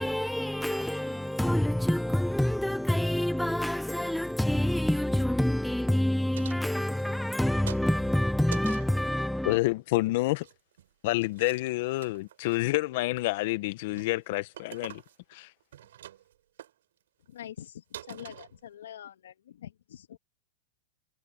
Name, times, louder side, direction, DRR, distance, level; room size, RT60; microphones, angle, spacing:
voice 1, 0.0-9.6, left 1 dB, ahead, 1.1 m, -27 dB
sound 1, 6.3-7.4 7.7-9.0 10.2-10.9 11.2-11.6 11.9-12.6 13.1-13.4 13.8-14.1 14.5-15.4 15.6-16.3 16.6-16.7 17.3-17.4 17.6-17.7 17.9-18.9, right 12 dB, 80° right, 4.8 m, -46 dB
voice 2, 9.4-10.5 11.0-15.0 15.3-15.5, left 20 dB, 60° left, 1.6 m, -28 dB
voice 3, 17.3-20.2, left 10 dB, 80° left, 2.1 m, -45 dB
hypercardioid pair, 110°, 0 cm